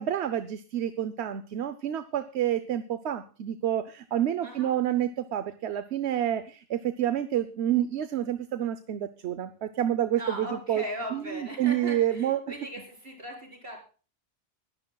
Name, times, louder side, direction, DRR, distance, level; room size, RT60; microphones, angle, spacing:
voice 1, 0.0-10.8 11.1-12.4, right 11 dB, 75° right, 12 dB, 1.0 m, -28 dB
voice 2, 10.2-13.8, equal, 55° right, 0 dB, 4.6 m, -38 dB
21.0 x 12.5 x 2.3 m, 0.36 s
omnidirectional pair, 1.2 m